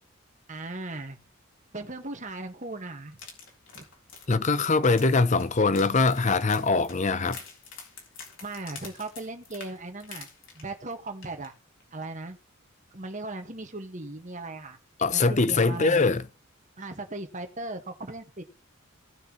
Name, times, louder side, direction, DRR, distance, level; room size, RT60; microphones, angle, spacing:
voice 1, 0.5-1.2 1.7-3.2 3.7-3.8 8.4-10.3 10.5-11.5 11.9-12.4 12.9-14.8 15.1-16.0 16.8-18.4, right 2 dB, 35° right, 1.6 m, -37 dB
sound 1, 3.1-10.9 11.2-11.5 11.8-11.9, left 5 dB, 65° left, 3.8 m, -46 dB
voice 2, 4.3-7.4 15.0-16.2, left 3 dB, 35° left, 0.7 m, -22 dB
18.0 x 6.7 x 3.1 m
head